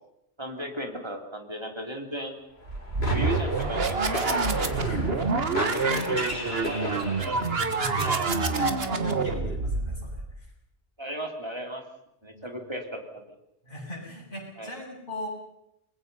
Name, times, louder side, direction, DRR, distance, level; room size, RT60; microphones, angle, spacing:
voice 1, 0.4-2.4 3.0-4.4 5.6-7.6 8.0-8.2 11.0-11.8 12.2-13.3 14.6-14.7, right 1 dB, 25° right, 3 dB, 3.4 m, -36 dB
sound 1, 2.6-7.7, left 1 dB, 70° left, 4.1 m, -35 dB
sound 2, 2.7-10.3, right 4 dB, 65° right, 1.8 m, -27 dB
voice 2, 5.5-6.9 7.8-10.5 12.2-12.7 13.6-15.3, left 1 dB, 50° left, -2 dB, 8.1 m, -38 dB
28.0 x 21.5 x 5.6 m, 0.82 s
omnidirectional pair, 1.1 m